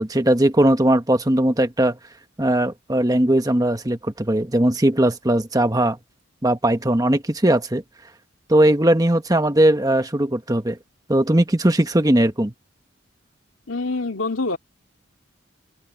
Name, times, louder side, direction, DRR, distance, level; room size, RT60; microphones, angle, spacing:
voice 1, 0.0-2.0 2.4-6.0 6.4-7.8 8.5-10.8 11.1-12.5, right 1 dB, 20° right, 1.2 m, -19 dB
voice 2, 13.7-14.6, left 3 dB, 80° left, 2.4 m, -25 dB
open air
head